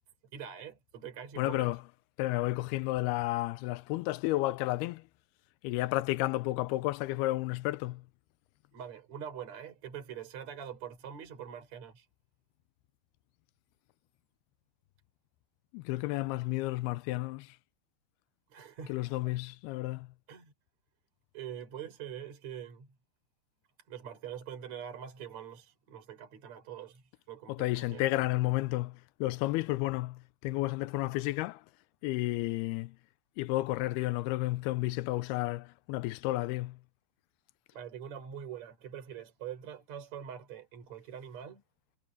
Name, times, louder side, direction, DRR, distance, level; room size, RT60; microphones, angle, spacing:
voice 1, 0.3-1.7 8.7-12.1 18.5-19.0 20.3-20.5 21.3-22.9 23.9-28.1 37.7-41.6, right 8 dB, 45° right, 5.4 m, -44 dB
voice 2, 1.4-1.8 2.2-5.0 5.6-8.0 15.7-17.5 18.9-20.1 27.5-31.6 32.0-33.0 33.4-36.8, left 18 dB, 85° left, 2.6 m, -32 dB
omnidirectional pair, 4.6 m